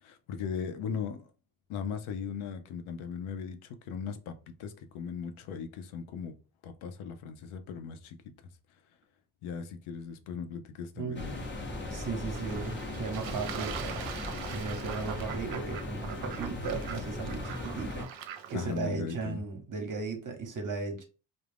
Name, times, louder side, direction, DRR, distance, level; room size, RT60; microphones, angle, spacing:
voice 1, 0.0-1.3 1.7-6.4 6.6-8.3 9.4-11.4 16.5-16.7 18.5-19.4, left 6 dB, 75° left, 0.6 m, -38 dB
sound 1, 11.1-18.1, left 2 dB, 25° left, 0.7 m, -38 dB
voice 2, 11.9-14.0 14.3-18.0 18.5-21.0, right 4 dB, 40° right, 0.8 m, -36 dB
Fowl / Bird / Water, 12.3-18.8, right 8 dB, 65° right, 0.6 m, -42 dB
2.3 x 2.0 x 3.3 m
cardioid pair, 70°, 50 cm